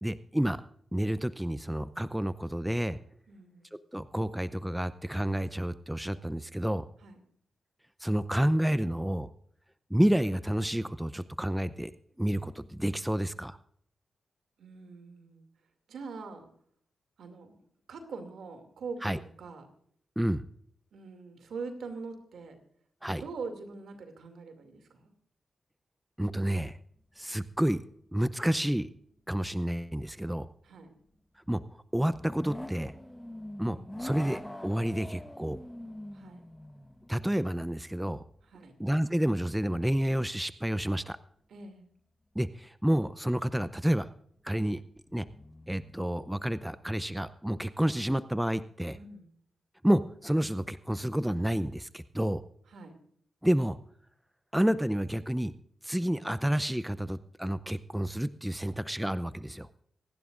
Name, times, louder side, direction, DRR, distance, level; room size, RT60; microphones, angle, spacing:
voice 1, 0.0-0.6 0.9-3.0 3.9-6.8 8.0-9.3 9.9-11.9 12.2-13.6 19.0-19.2 20.2-20.4 23.0-23.2 26.2-26.8 27.2-27.8 28.1-28.9 29.3-30.5 31.5-31.6 31.9-32.9 33.6-35.6 37.1-38.2 38.8-41.2 42.3-44.1 44.4-44.8 45.1-45.3 45.7-49.0 49.8-52.4 53.4-53.8 54.5-55.5 55.8-59.7, right 1 dB, 5° right, 14 dB, 0.6 m, -29 dB
voice 2, 3.3-3.8 7.0-7.2 14.6-15.4 15.9-16.5 17.2-17.6 17.9-19.7 20.9-22.6 23.1-25.1 30.6-30.9 33.7-34.0 36.1-36.5 38.5-38.8 41.5-41.9 48.9-49.3 52.7-53.0, right 4 dB, 85° right, 6 dB, 2.5 m, -43 dB
sound 1, 27.2-27.9 28.3-28.4 32.0-38.5 43.4-43.5 45.0-46.3, left 1 dB, 10° left, 1.1 m, -45 dB
25.0 x 11.0 x 2.5 m, 0.64 s
cardioid pair, 65°, 0 cm